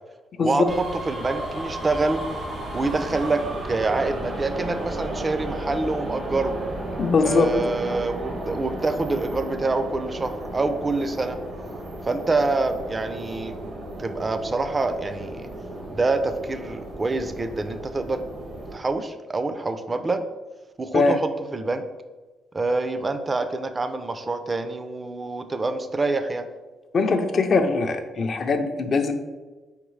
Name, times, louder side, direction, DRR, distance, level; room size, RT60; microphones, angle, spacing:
voice 1, 0.4-2.2 2.7-6.5 7.2-11.4 12.0-13.6 14.0-15.5 15.9-18.2 18.7-20.2 20.8-21.8 22.5-26.5, right 3 dB, 25° right, 9 dB, 0.4 m, -26 dB
sound 1, 0.6-18.7, right 1 dB, 90° right, 1.4 m, -34 dB
voice 2, 7.0-7.5 20.9-21.2 26.9-29.1, left 4 dB, 50° left, 7 dB, 0.5 m, -21 dB
4.6 x 3.6 x 3.1 m, 1.2 s
cardioid pair, 90°, 0 cm